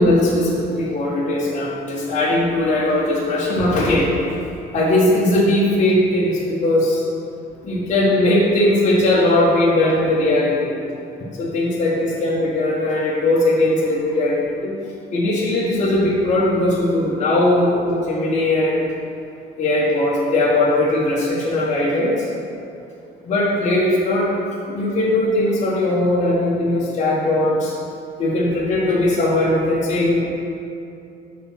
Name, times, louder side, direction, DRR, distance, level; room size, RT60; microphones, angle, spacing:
voice 1, 0.0-4.1 4.7-7.0 7.6-10.7 11.4-14.7 15.1-18.8 19.6-22.3 23.2-24.3 24.7-27.7 28.2-30.2, left 1 dB, 45° left, -6 dB, 1.3 m, -19 dB
6.6 x 4.2 x 5.7 m, 2.7 s
cardioid pair, 110°, 17 cm